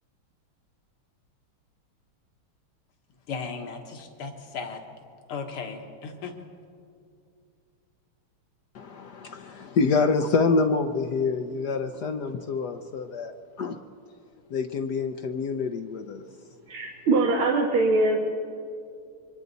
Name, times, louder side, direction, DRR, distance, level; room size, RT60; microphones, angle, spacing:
voice 1, 3.3-4.8 5.3-6.4, left 5 dB, 85° left, 3 dB, 2.3 m, -36 dB
voice 2, 8.7-13.8 14.5-16.2, left 4 dB, 65° left, 6 dB, 1.1 m, -26 dB
voice 3, 16.7-18.2, right 2 dB, 75° right, -2 dB, 2.3 m, -22 dB
27.0 x 23.5 x 4.1 m, 2.4 s
omnidirectional pair, 2.4 m